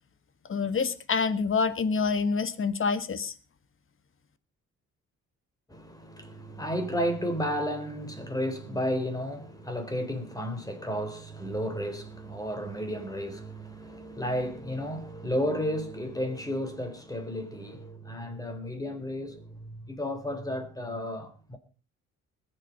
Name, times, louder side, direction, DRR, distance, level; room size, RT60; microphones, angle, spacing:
voice 1, 0.5-3.3, left 5 dB, 45° left, 1.6 m, -27 dB
voice 2, 5.7-21.6, equal, 10° left, 3.8 m, -33 dB
20.5 x 7.7 x 5.4 m
cardioid pair, 90°, 30 cm